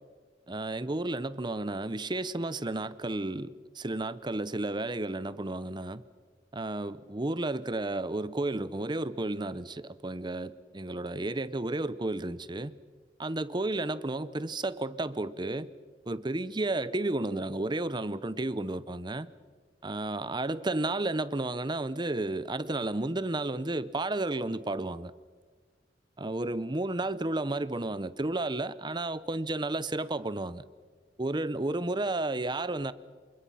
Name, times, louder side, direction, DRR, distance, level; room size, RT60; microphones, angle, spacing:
voice 1, 0.5-6.0 6.5-12.7 13.2-15.7 16.1-19.3 19.8-25.1 26.2-30.6 31.2-32.9, right 2 dB, 25° right, 0.8 m, -32 dB
28.0 x 25.0 x 5.7 m
head